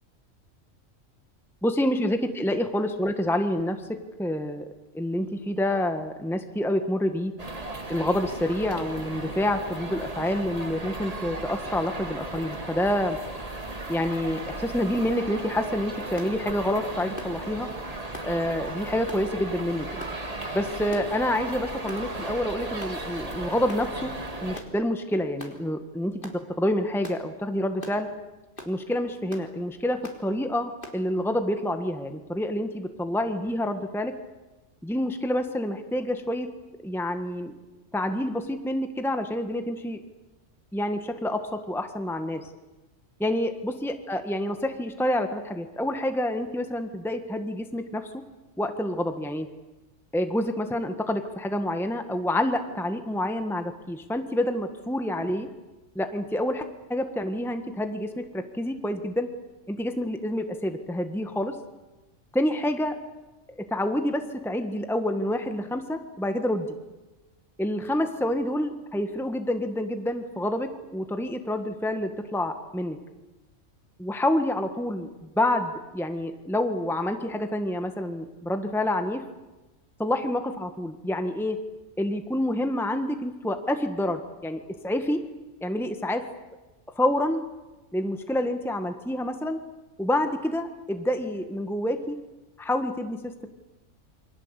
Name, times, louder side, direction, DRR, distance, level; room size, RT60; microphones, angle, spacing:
voice 1, 1.6-4.6 4.9-7.3 7.9-13.2 13.9-17.7 18.2-19.9 20.5-24.1 24.4-28.1 28.6-34.1 34.8-36.5 36.8-37.5 37.9-40.0 40.7-42.5 43.2-48.1 48.6-49.5 50.1-55.5 55.9-59.3 59.7-61.5 62.3-62.9 63.6-66.7 67.6-73.0 74.0-75.1 75.3-79.2 80.0-81.6 82.0-85.2 85.6-86.3 87.0-87.5 87.9-89.6 90.0-92.2 92.6-93.5, left 1 dB, ahead, 7 dB, 1.5 m, -28 dB
sound 1, 7.4-24.6, right 2 dB, 30° right, 2.2 m, -36 dB
sound 2, 16.2-16.4 17.2-17.4 18.1-18.3 19.1-19.3 20.0-20.2 20.9-21.2 21.9-22.1 22.8-23.0 23.7-23.9 24.5-24.7 25.4-25.6 26.2-26.4 27.0-27.2 27.8-28.0 28.6-28.8 29.3-29.5 30.0-30.2 30.8-31.0, left 1 dB, 45° left, 4.0 m, -41 dB
28.5 x 25.0 x 8.3 m, 1.1 s
omnidirectional pair, 1.3 m